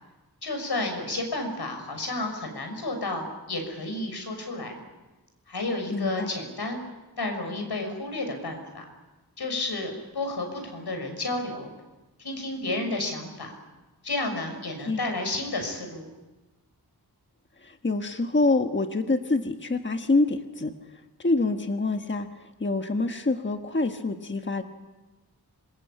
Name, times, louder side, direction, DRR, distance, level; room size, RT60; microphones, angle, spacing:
voice 1, 0.4-4.8 5.5-6.8 7.2-8.8 9.4-11.7 12.2-13.6 14.0-16.1, left 2 dB, 90° left, 4 dB, 6.3 m, -31 dB
voice 2, 5.9-6.3 14.9-15.0 17.6-20.7 21.2-22.3 22.6-24.6, left 3 dB, 30° left, 6 dB, 1.4 m, -26 dB
26.5 x 22.5 x 8.7 m, 1.1 s
wide cardioid pair, 90°, 38 cm